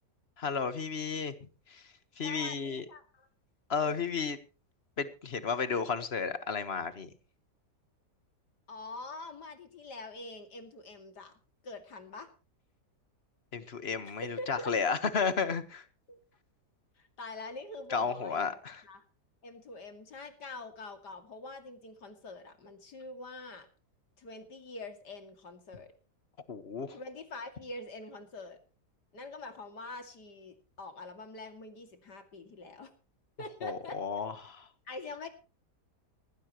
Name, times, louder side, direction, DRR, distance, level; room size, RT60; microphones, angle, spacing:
voice 1, 0.4-1.3 1.7-1.8 2.2-2.8 3.7-4.4 5.0-7.1 13.5-15.8 17.9-18.8 26.5-27.0 33.6-34.7, left 5 dB, 40° left, 1.5 m, -33 dB
voice 2, 2.2-3.3 3.8-4.0 8.7-11.3 11.6-12.3 14.0-14.7 16.1-16.2 17.0-18.6 18.8-19.0 19.4-23.7 24.2-25.9 26.9-28.6 29.1-32.9 33.4-34.0 34.9-35.3, left 2 dB, 80° left, 3.0 m, -45 dB
19.0 x 15.5 x 3.0 m
omnidirectional pair, 1.7 m